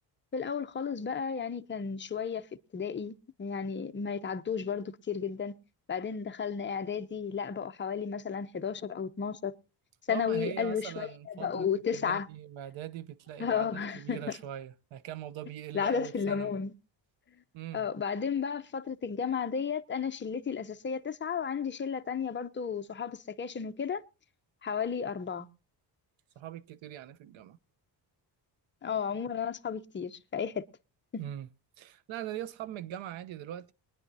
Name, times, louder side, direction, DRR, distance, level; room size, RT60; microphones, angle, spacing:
voice 1, 0.3-2.5 2.7-5.5 5.9-9.5 10.1-12.3 13.4-14.4 15.7-16.7 17.7-24.0 24.6-25.5 28.8-30.7 31.1-31.2, left 6 dB, 25° left, 0.7 m, -33 dB
voice 2, 10.1-16.5 17.5-17.9 26.4-27.6 31.2-31.5 31.8-33.7, right 11 dB, 85° right, 0.9 m, -41 dB
22.5 x 9.9 x 2.7 m
cardioid pair, 115°, 45 cm